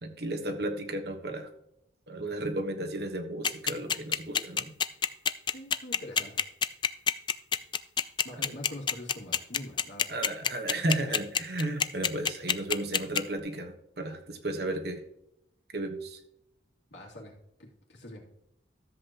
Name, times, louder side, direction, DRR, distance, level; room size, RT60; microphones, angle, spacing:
voice 1, 0.0-1.5 2.1-4.7 8.4-8.5 10.1-15.0 15.7-16.2, right 1 dB, 55° right, 5 dB, 1.3 m, -34 dB
sound 1, 3.4-13.2, left 7 dB, 25° left, 0.3 m, -26 dB
voice 2, 5.5-6.5 8.2-10.5 11.0-11.1 16.9-18.2, left 1 dB, 70° left, -2 dB, 2.6 m, -45 dB
13.5 x 7.7 x 2.9 m, 0.80 s
head